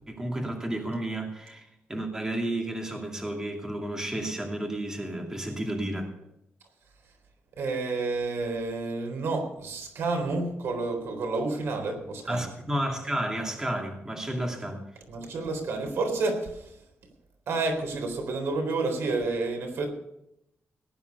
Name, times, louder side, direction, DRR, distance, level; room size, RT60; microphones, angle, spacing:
voice 1, 0.1-6.1 12.3-14.8, right 1 dB, 15° right, 1 dB, 2.6 m, -32 dB
voice 2, 7.6-12.5 15.1-16.8 17.5-19.9, right 3 dB, 75° right, 4 dB, 3.9 m, -30 dB
18.5 x 9.8 x 5.5 m, 0.83 s
wide cardioid pair, 135°, 4 cm